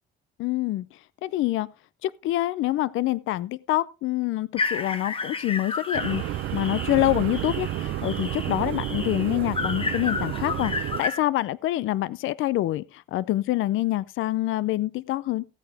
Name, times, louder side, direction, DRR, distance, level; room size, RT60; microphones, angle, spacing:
voice 1, 0.4-0.9 1.2-1.7 2.0-15.5, left 15 dB, 85° left, 0.5 m, -26 dB
sound 1, 4.6-11.2, left 4 dB, 25° left, 1.1 m, -32 dB
sound 2, 5.9-11.0, right 15 dB, 80° right, 0.6 m, -31 dB
15.5 x 8.8 x 3.4 m
cardioid pair, 90°, 20 cm